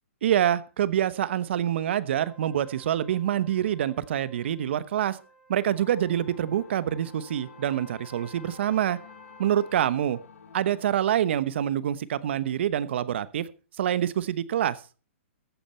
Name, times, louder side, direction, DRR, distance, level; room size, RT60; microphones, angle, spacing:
voice 1, 0.2-5.2 5.5-9.0 9.4-10.2 10.5-13.5 13.8-14.8, right 10 dB, 60° right, 16 dB, 1.0 m, -26 dB
Trumpet, 2.2-10.0, left 2 dB, ahead, 5.1 m, -54 dB
sound 1, 5.6-11.0, left 5 dB, 80° left, 1.7 m, -50 dB
14.5 x 9.1 x 4.4 m, 0.35 s
hypercardioid pair, 155°, 7 cm